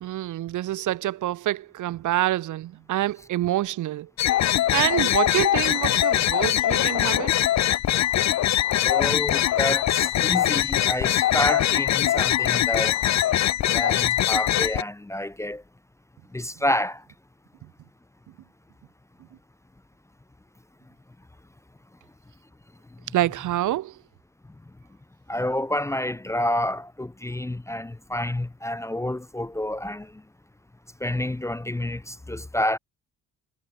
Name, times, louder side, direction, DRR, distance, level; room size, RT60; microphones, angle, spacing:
voice 1, 0.0-4.1 4.7-7.3 23.1-23.9, right 14 dB, 80° right, 1.9 m, -26 dB
sound 1, 4.2-14.8, left 13 dB, 65° left, 0.9 m, -22 dB
voice 2, 8.7-13.0 13.7-15.6 16.3-17.0 25.3-30.1 31.0-32.8, left 1 dB, 10° left, 0.7 m, -28 dB
cardioid pair, 90°, 30 cm